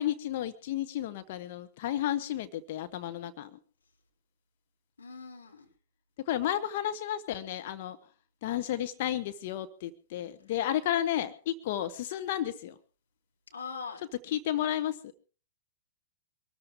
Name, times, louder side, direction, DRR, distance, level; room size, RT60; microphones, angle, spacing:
voice 1, 0.0-3.6 6.3-8.0 8.4-12.7 14.3-15.1, left 11 dB, 50° left, 10 dB, 1.0 m, -32 dB
voice 2, 5.0-5.7 13.5-14.0, left 5 dB, 80° left, 1 dB, 3.7 m, -41 dB
23.5 x 13.5 x 3.6 m, 0.38 s
figure-of-eight pair, 100°, 0 cm